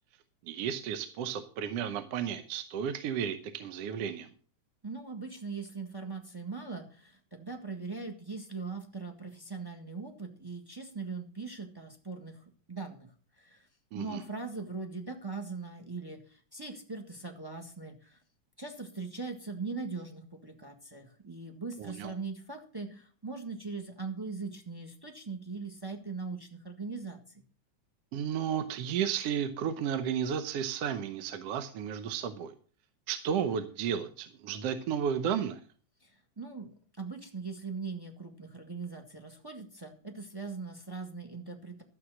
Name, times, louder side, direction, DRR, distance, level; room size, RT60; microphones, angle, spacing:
voice 1, 0.4-4.3 13.9-14.2 21.8-22.1 28.1-32.5 33.1-35.6, right 8 dB, 65° right, 10 dB, 1.7 m, -33 dB
voice 2, 4.8-13.7 13.9-18.2 18.6-27.4 36.0-36.7 37.0-41.8, right 4 dB, 15° right, 4 dB, 0.7 m, -40 dB
12.5 x 7.7 x 6.3 m, 0.43 s
omnidirectional pair, 3.4 m